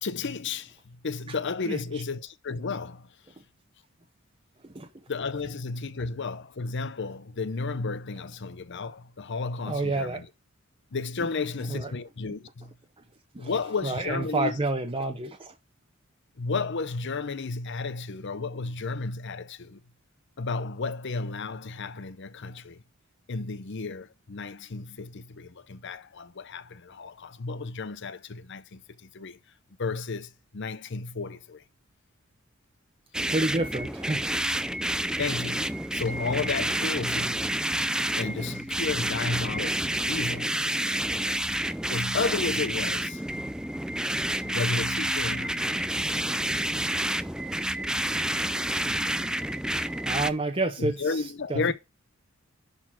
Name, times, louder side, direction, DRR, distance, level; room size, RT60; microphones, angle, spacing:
voice 1, 0.0-3.1 5.1-10.3 10.9-12.7 13.4-14.6 16.4-19.8 20.4-22.8 23.3-29.4 29.8-31.6 35.2-37.5 38.2-40.6 41.9-43.2 44.4-45.7 50.8-51.7, left 4 dB, 60° left, 0.7 m, -33 dB
voice 2, 1.7-2.0 4.6-4.9 9.7-10.2 11.7-11.9 13.3-13.5 13.8-15.5 33.3-34.3 50.0-51.7, right 2 dB, 25° right, 1.0 m, -29 dB
sound 1, 33.1-50.3, right 1 dB, 5° right, 0.4 m, -29 dB
11.0 x 4.1 x 5.9 m
head